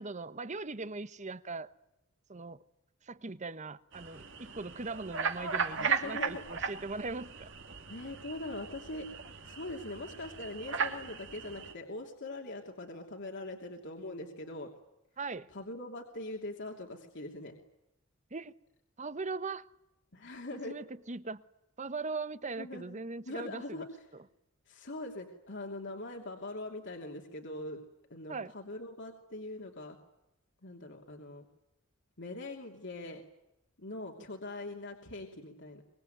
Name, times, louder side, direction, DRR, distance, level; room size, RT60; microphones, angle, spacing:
voice 1, 0.0-1.7 2.3-2.6 3.0-7.5 15.2-15.5 18.3-18.5 19.0-19.6 20.5-21.4 21.8-23.9 28.3-28.5, right 3 dB, 35° right, 1.1 m, -40 dB
sound 1, 3.9-11.7, right 5 dB, 60° right, 2.6 m, -37 dB
voice 2, 5.8-6.4 7.9-9.1 9.4-14.7 15.5-17.5 20.1-20.8 22.6-23.0 23.3-23.9 24.7-27.8 28.1-30.0 30.6-31.4 32.2-33.2 33.8-35.8, left 2 dB, 60° left, 2.9 m, -42 dB
24.5 x 23.5 x 9.3 m
head